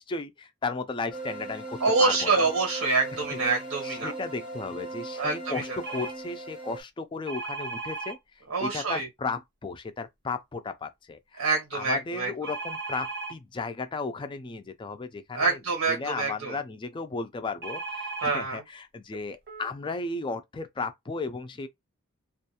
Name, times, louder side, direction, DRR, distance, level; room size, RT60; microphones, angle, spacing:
voice 1, 0.0-2.4 3.1-3.4 3.8-8.2 8.6-15.6 15.9-21.7, left 4 dB, 20° left, 0.3 m, -35 dB
sound 1, 1.1-6.8, right 2 dB, 5° right, 0.6 m, -38 dB
voice 2, 1.8-4.1 5.2-5.8 8.5-9.1 11.4-12.3 15.3-16.6 18.2-18.6, right 4 dB, 85° right, 0.9 m, -26 dB
sound 2, 5.8-6.1 7.3-8.2 12.4-13.3 17.6-18.3 19.1-19.2 19.5-19.7, right 3 dB, 50° right, 0.6 m, -36 dB
2.4 x 2.2 x 2.8 m
head